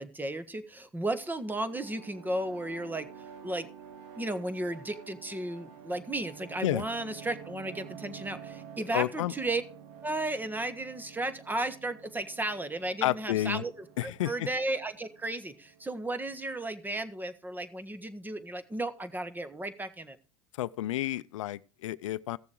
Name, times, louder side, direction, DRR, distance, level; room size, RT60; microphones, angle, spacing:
voice 1, 0.0-3.1 3.4-3.7 4.2-9.6 10.0-13.7 14.0-20.2, right 2 dB, 10° right, 1.4 m, -34 dB
sound 1, 1.0-16.5, right 7 dB, 65° right, 1.7 m, -50 dB
voice 2, 8.9-9.3 13.0-13.6 14.0-14.5 20.6-22.4, left 14 dB, 85° left, 0.6 m, -30 dB
15.5 x 7.0 x 4.7 m
hypercardioid pair, 95°, 16 cm